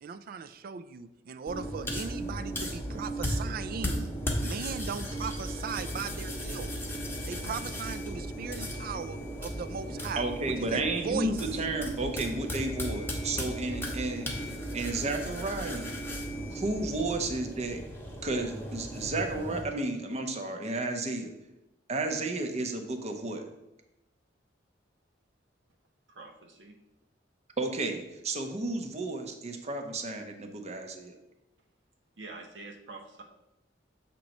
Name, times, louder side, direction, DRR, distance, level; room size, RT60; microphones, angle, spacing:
voice 1, 0.0-4.1 4.4-6.7 7.2-11.3, right 6 dB, 50° right, 13 dB, 0.3 m, -38 dB
sound 1, 1.5-19.6, equal, 10° left, 0.9 m, -36 dB
voice 2, 10.2-16.0 16.5-17.8 18.2-21.3 21.9-23.4 27.6-31.2, right 2 dB, 35° right, 5 dB, 0.7 m, -32 dB
voice 3, 26.1-26.8 32.2-33.2, right 3 dB, 75° right, 1 dB, 0.9 m, -46 dB
7.3 x 3.0 x 5.2 m, 0.91 s
head